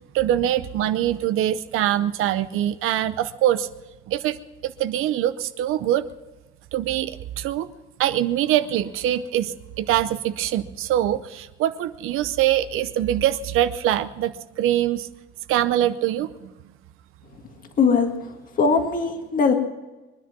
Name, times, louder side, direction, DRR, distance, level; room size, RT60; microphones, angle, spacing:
voice 1, 0.1-3.7 4.1-4.4 4.6-6.1 6.7-7.7 8.0-15.1 15.5-16.3, right 12 dB, 80° right, 10 dB, 0.7 m, -23 dB
voice 2, 17.8-18.1 18.6-19.5, left 5 dB, 40° left, 5 dB, 1.8 m, -19 dB
23.0 x 10.5 x 6.0 m, 1.1 s
cardioid pair, 160°, 21 cm